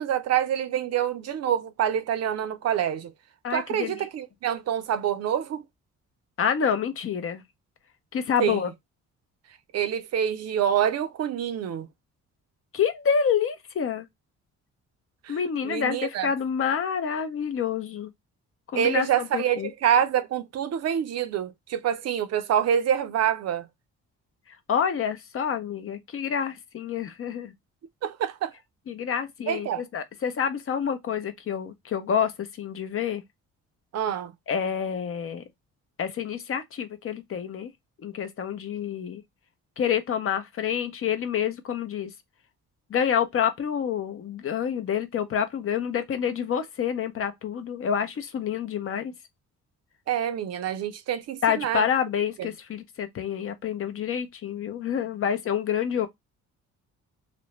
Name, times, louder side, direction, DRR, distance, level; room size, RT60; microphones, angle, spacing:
voice 1, 0.0-3.1 3.5-5.6 8.4-8.6 9.7-11.9 15.2-15.4 15.6-16.3 18.7-23.7 28.0-28.5 29.5-29.8 33.9-34.3 50.1-51.9 52.4-52.5, right 9 dB, 60° right, 0.5 m, -26 dB
voice 2, 3.4-3.9 6.4-7.4 8.1-8.7 12.7-14.1 15.3-18.1 18.7-19.7 24.7-27.5 28.9-33.2 34.5-35.4 36.0-37.7 38.0-39.2 39.8-42.1 42.9-49.1 51.4-56.1, left 8 dB, 45° left, 0.6 m, -28 dB
2.4 x 2.1 x 2.9 m
cardioid pair, 90°, 30 cm